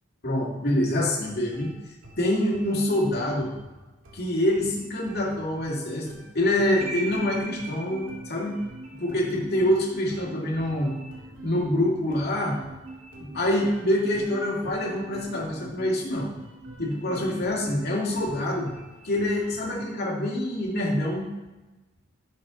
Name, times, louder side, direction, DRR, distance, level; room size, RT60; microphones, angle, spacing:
voice 1, 0.2-1.7 2.2-3.5 4.1-8.6 9.0-10.9 11.4-12.6 13.2-16.4 16.8-18.7 19.0-21.3, left 1 dB, 55° left, -3 dB, 2.1 m, -26 dB
sound 1, 1.1-19.6, right 2 dB, 80° right, 2.2 m, -49 dB
sound 2, 6.8-18.9, right 2 dB, 35° right, 1.2 m, -43 dB
10.5 x 5.7 x 3.8 m, 1.1 s
head